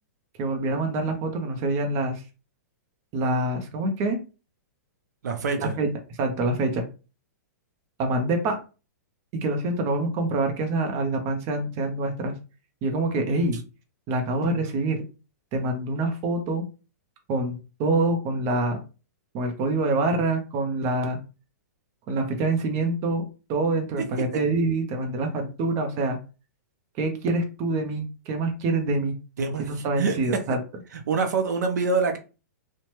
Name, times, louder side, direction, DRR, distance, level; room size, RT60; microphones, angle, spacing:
voice 1, 0.4-2.2 3.1-4.2 5.6-5.9 6.2-6.8 8.0-8.6 9.3-12.3 12.8-13.6 14.1-15.0 15.5-16.6 17.3-18.8 19.3-21.2 22.1-26.2 27.0-29.1 29.7-30.6, right 2 dB, 30° right, 0.6 m, -26 dB
voice 2, 5.2-5.8 24.0-24.1 29.4-30.4 30.9-32.2, right 4 dB, 75° right, 0.5 m, -26 dB
2.8 x 2.1 x 3.0 m
hypercardioid pair, 145°, 9 cm